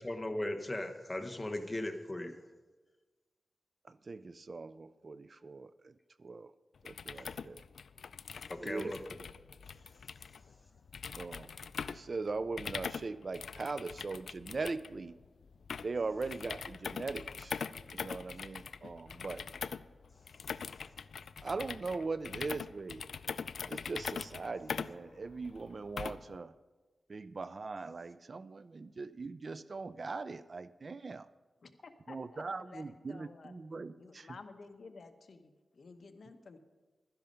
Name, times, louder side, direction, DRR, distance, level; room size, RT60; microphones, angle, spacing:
voice 1, 0.0-2.4 7.3-7.4 8.5-9.0, left 1 dB, 20° left, 5 dB, 1.0 m, -37 dB
voice 2, 3.8-6.5 6.8-7.6 8.6-9.0 11.2-11.5 11.9-15.1 15.8-17.6 17.9-19.5 21.4-23.0 23.7-26.5 27.1-31.3 32.1-34.3, right 3 dB, 45° right, 15 dB, 0.3 m, -40 dB
sound 1, 6.8-26.4, left 6 dB, 85° left, 0.3 m, -43 dB
voice 3, 31.6-33.6 34.0-36.6, left 4 dB, 65° left, 8 dB, 0.9 m, -53 dB
12.5 x 10.5 x 5.4 m, 1.3 s
wide cardioid pair, 105°, 0 cm